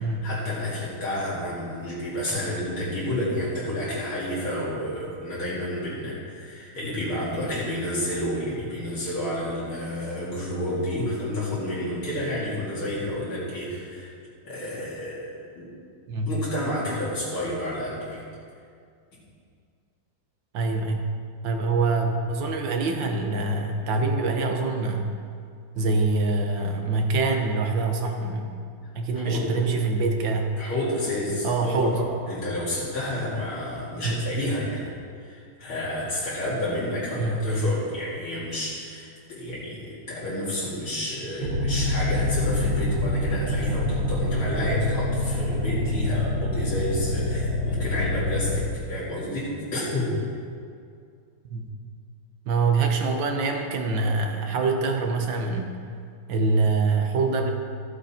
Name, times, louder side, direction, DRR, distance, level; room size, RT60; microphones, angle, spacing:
voice 1, 0.0-14.1 14.4-15.7 16.3-18.2 29.1-29.6 30.6-34.9 35.2-50.1, left 1 dB, 75° left, -9 dB, 3.2 m, -30 dB
voice 2, 20.5-21.1 21.4-25.1 25.8-28.5 28.9-30.5 31.4-31.9 34.0-34.3 37.1-37.4 51.5-51.7 52.5-55.7 56.3-57.5, right 3 dB, 65° right, 3 dB, 1.6 m, -25 dB
sound 1, 41.4-48.7, left 1 dB, 50° right, 1.6 m, -26 dB
14.0 x 7.9 x 4.3 m, 2.3 s
omnidirectional pair, 2.3 m